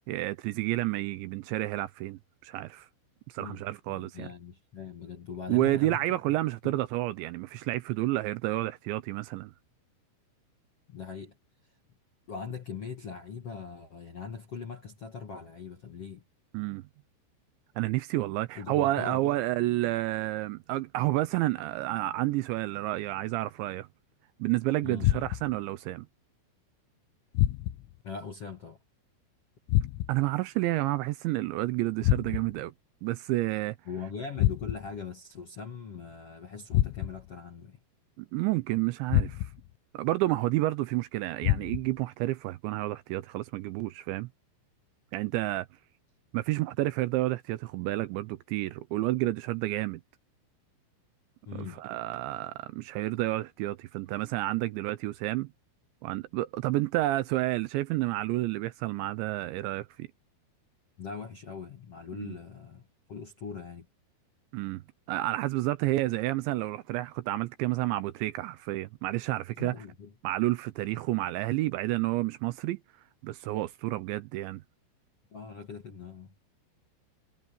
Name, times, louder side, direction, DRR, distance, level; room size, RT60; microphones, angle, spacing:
voice 1, 0.1-2.9 3.3-4.3 5.5-9.5 16.5-16.8 17.8-23.9 24.4-26.1 30.1-32.7 33.0-33.8 38.2-39.5 39.9-44.3 45.1-45.7 46.3-50.0 51.5-55.5 56.0-60.1 62.2-62.4 64.5-64.8 65.1-69.8 70.2-72.8 73.2-74.6, right 17 dB, 80° right, 2.8 m, -30 dB
voice 2, 3.4-6.0 6.6-6.7 10.9-11.3 12.3-16.2 18.6-19.2 24.8-25.1 28.0-28.8 33.9-37.8 51.5-51.8 61.0-63.9 69.6-70.1 75.3-76.3, left 6 dB, 55° left, 1.7 m, -41 dB
sound 1, 25.0-25.6 27.4-28.0 29.7-30.3 32.0-32.7 34.4-35.0 36.7-37.4 39.1-39.7 41.4-42.0, left 15 dB, 85° left, 3.5 m, -28 dB
omnidirectional pair, 5.7 m